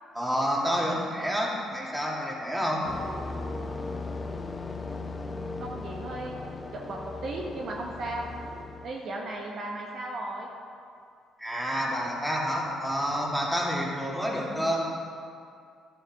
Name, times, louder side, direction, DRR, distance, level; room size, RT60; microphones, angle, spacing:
voice 1, 0.1-2.8 11.4-14.9, equal, 5° right, -3 dB, 2.8 m, -29 dB
sound 1, 2.8-8.9, left 3 dB, 35° left, 0.9 m, -37 dB
voice 2, 5.6-6.4 6.7-8.3 8.8-10.5, right 2 dB, 60° right, 0 dB, 1.3 m, -35 dB
12.0 x 9.8 x 3.8 m, 2.4 s
supercardioid pair, 60°, 0 cm